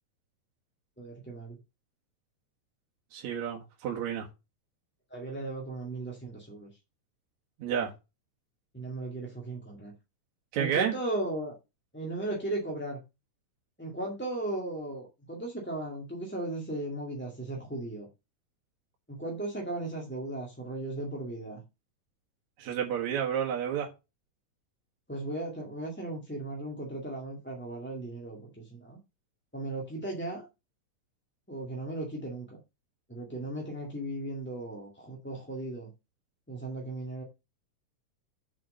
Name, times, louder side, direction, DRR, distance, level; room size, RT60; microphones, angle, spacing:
voice 1, 1.0-1.6 5.1-6.7 8.7-9.9 10.6-11.5 11.9-13.0 13.8-18.1 19.1-21.6 25.1-29.0 29.5-30.5 31.5-32.6 33.1-35.9 36.5-37.2, right 2 dB, 5° left, 1.4 m, -36 dB
voice 2, 3.1-4.3 7.6-7.9 10.5-10.9 22.6-23.9, right 8 dB, 75° right, 2.8 m, -30 dB
7.7 x 5.6 x 6.5 m
omnidirectional pair, 3.3 m